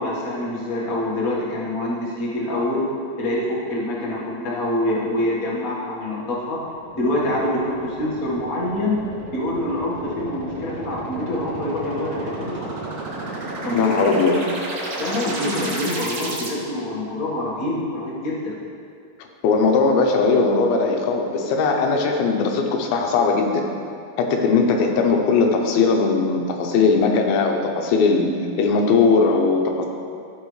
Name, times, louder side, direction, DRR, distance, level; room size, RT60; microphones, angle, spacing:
voice 1, 0.0-2.9 3.2-6.6 6.9-9.0 9.3-12.6 13.6-14.0 15.0-18.5, left 1 dB, 60° left, -6 dB, 0.9 m, -25 dB
sound 1, 6.6-16.5, right 2 dB, 70° right, 1.4 m, -33 dB
voice 2, 13.7-14.3 19.4-23.6 24.2-29.9, left 4 dB, 90° left, 2 dB, 2.7 m, -19 dB
14.5 x 5.0 x 3.2 m, 2.4 s
omnidirectional pair, 4.2 m